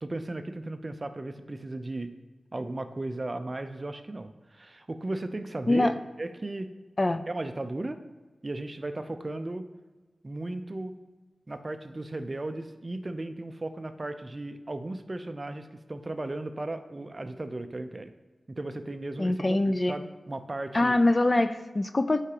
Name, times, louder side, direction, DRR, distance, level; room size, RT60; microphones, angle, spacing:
voice 1, 0.0-2.2 2.5-6.7 7.3-8.0 8.4-9.6 10.2-10.9 11.5-18.1 18.5-19.6 19.9-21.0, right 2 dB, 35° right, 9 dB, 0.5 m, -36 dB
voice 2, 19.2-19.9 20.7-22.2, left 2 dB, 35° left, 11 dB, 0.4 m, -24 dB
8.0 x 4.9 x 2.8 m, 1.3 s
cardioid pair, 55°, 0 cm